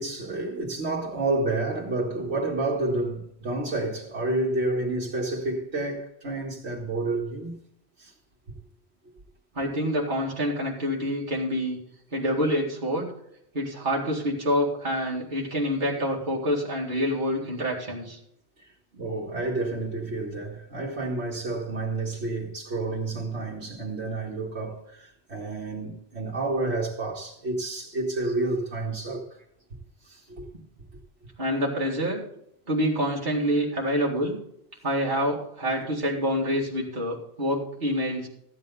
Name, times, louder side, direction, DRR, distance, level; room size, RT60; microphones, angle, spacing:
voice 1, 0.0-7.6 8.0-8.1 18.6-18.7 18.9-29.4 30.0-30.5, right 2 dB, 80° right, 2.2 m, -30 dB
voice 2, 9.5-11.8 12.1-13.1 13.5-18.2 28.2-28.3 31.4-32.2 32.7-34.4 34.8-38.3, equal, 50° right, 2.4 m, -27 dB
14.5 x 8.8 x 4.0 m
omnidirectional pair, 1.1 m